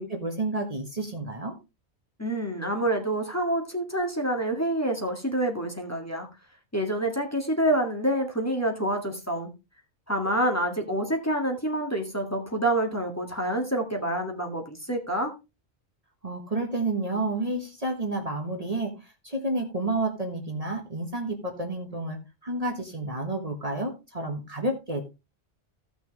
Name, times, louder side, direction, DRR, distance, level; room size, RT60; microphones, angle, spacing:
voice 1, 0.0-1.5 16.2-25.0, right 2 dB, 35° right, 1.5 m, -30 dB
voice 2, 2.2-6.3 6.7-9.5 10.1-15.3, right 1 dB, 15° left, 1.9 m, -27 dB
15.5 x 6.1 x 3.2 m
omnidirectional pair, 1.2 m